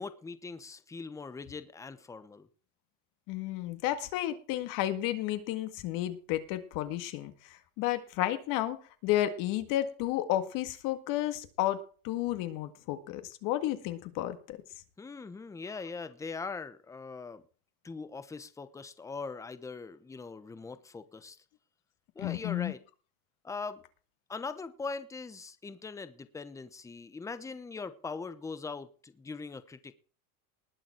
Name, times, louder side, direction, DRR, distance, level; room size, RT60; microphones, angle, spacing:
voice 1, 0.0-2.5 15.0-17.4 17.8-21.4 22.1-22.8 23.4-23.8 24.3-29.9, left 4 dB, 5° left, 13 dB, 0.9 m, -41 dB
voice 2, 3.3-8.8 9.0-14.6 22.2-22.7, left 13 dB, 50° left, 9 dB, 1.9 m, -32 dB
20.0 x 7.1 x 4.5 m, 0.38 s
cardioid pair, 160°, 42 cm